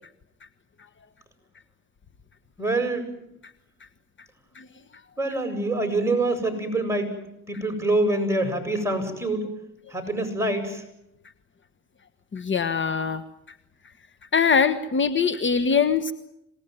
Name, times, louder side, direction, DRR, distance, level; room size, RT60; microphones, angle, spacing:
voice 1, 2.6-3.1 5.2-7.2 7.5-9.5 9.9-10.8, right 2 dB, 10° right, 6 dB, 7.8 m, -25 dB
voice 2, 12.3-13.2 14.3-16.1, left 6 dB, 40° left, 10 dB, 1.4 m, -22 dB
26.5 x 19.5 x 9.5 m, 0.83 s
cardioid pair, 90°, 30 cm